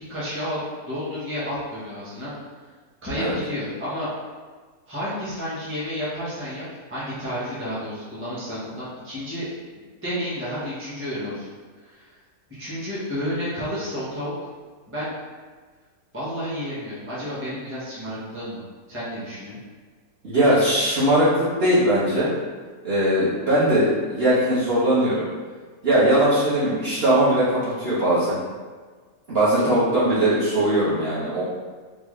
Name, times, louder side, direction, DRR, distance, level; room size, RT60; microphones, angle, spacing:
voice 1, 0.1-2.3 3.0-4.1 4.9-9.5 10.0-11.5 11.8-12.1 12.6-14.3 14.9-15.2 16.1-18.6 18.9-19.6 29.5-29.8, equal, 10° right, -10 dB, 0.9 m, -31 dB
voice 2, 20.2-22.3 22.8-25.3 25.8-28.4 29.3-31.4, right 1 dB, 45° right, -11 dB, 1.2 m, -20 dB
3.9 x 2.3 x 3.1 m, 1.5 s
omnidirectional pair, 1.6 m